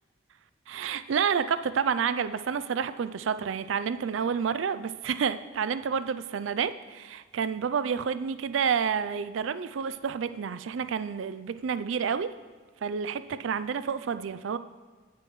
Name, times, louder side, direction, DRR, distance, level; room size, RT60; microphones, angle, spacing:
voice 1, 0.7-12.3 12.8-14.6, right 7 dB, 85° right, 13 dB, 0.4 m, -29 dB
17.0 x 6.9 x 3.1 m, 1.5 s
head